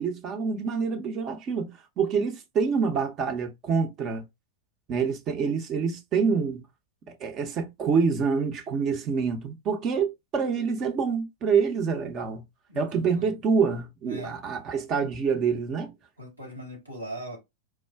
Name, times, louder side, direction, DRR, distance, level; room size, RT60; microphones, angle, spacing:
voice 1, 0.0-4.2 4.9-6.6 7.2-12.4 12.7-15.9, right 5 dB, 30° right, 0.7 m, -26 dB
voice 2, 12.7-13.4 14.0-14.6 16.2-17.4, equal, 85° right, 1.4 m, -40 dB
4.5 x 2.3 x 2.2 m
figure-of-eight pair, 90°, 0 cm